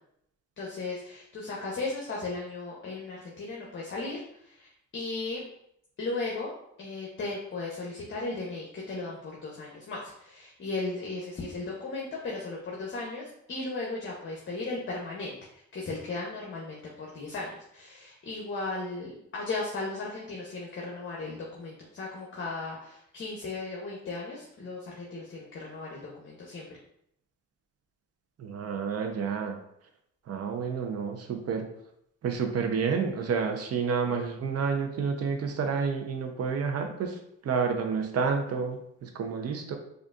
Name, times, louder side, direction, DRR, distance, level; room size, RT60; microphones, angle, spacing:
voice 1, 0.6-5.5 6.0-15.3 15.7-26.7, left 3 dB, 40° left, -3 dB, 0.8 m, -36 dB
voice 2, 28.4-29.6 30.3-31.7 32.2-39.8, right 5 dB, 55° right, 5 dB, 0.7 m, -30 dB
4.9 x 2.5 x 2.4 m, 0.74 s
cardioid pair, 90°, 30 cm